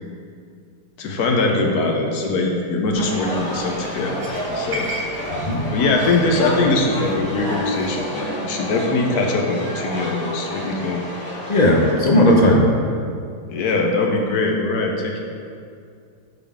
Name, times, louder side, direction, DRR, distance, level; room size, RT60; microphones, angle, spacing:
voice 1, 1.0-4.9 5.7-11.0 13.5-15.2, left 3 dB, 70° left, 1 dB, 1.4 m, -22 dB
sound 1, 2.8-8.0, equal, 30° right, 1.8 m, -37 dB
sound 2, 2.9-11.9, equal, 55° left, 2.0 m, -30 dB
voice 2, 5.3-5.6 11.5-12.6, left 1 dB, 40° left, -1 dB, 0.6 m, -15 dB
11.5 x 4.0 x 3.6 m, 2.3 s
omnidirectional pair, 1.8 m